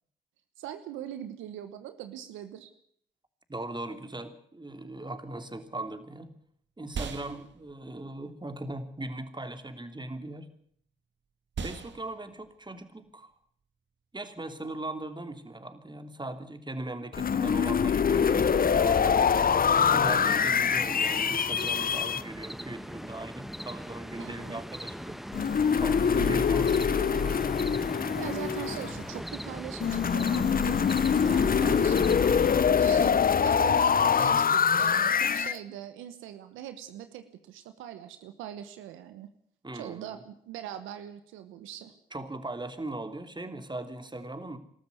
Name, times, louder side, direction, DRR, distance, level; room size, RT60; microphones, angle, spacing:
voice 1, 0.6-2.7 24.2-24.6 26.1-26.4 28.2-30.8 31.1-39.3 39.7-41.9, right 11 dB, 90° right, 10 dB, 1.1 m, -41 dB
voice 2, 3.5-6.3 6.8-10.5 11.6-13.3 14.1-19.2 19.8-25.2 25.8-27.4 39.6-40.2 42.1-44.6, right 2 dB, 25° right, 8 dB, 3.1 m, -39 dB
sound 1, 5.7-15.2, right 6 dB, 65° right, 2.0 m, -44 dB
sound 2, 17.1-22.2 25.3-29.1 29.8-35.6, left 7 dB, 45° left, 0.8 m, -24 dB
sound 3, 18.1-32.6, equal, ahead, 1.5 m, -40 dB
20.5 x 13.5 x 9.6 m, 0.65 s
supercardioid pair, 40°, 20 cm